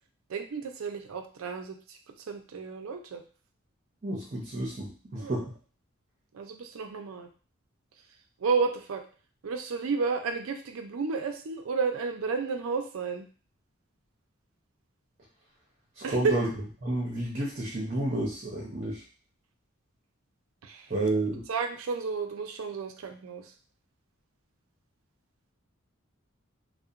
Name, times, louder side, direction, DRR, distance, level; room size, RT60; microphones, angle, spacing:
voice 1, 0.3-2.0 2.3-3.2 5.2-5.3 6.3-7.3 8.4-9.0 9.4-13.3 16.0-16.4 20.6-20.9 21.5-23.5, right 5 dB, 80° right, 5 dB, 0.4 m, -31 dB
voice 2, 4.0-5.5 16.0-16.5 16.8-19.0 20.9-21.4, right 2 dB, 40° right, -4 dB, 0.6 m, -30 dB
2.7 x 2.1 x 2.4 m, 0.39 s
head